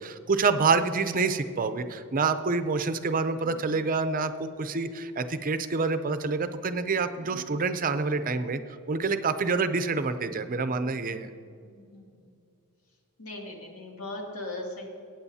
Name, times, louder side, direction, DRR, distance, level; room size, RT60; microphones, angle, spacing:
voice 1, 0.0-8.6 8.9-11.3, right 4 dB, 40° right, 10 dB, 0.6 m, -27 dB
voice 2, 3.3-3.8 6.9-7.6 11.1-11.3 11.6-12.4 13.2-14.8, left 2 dB, 80° left, -1 dB, 2.4 m, -41 dB
22.0 x 9.2 x 2.8 m, 2.4 s
head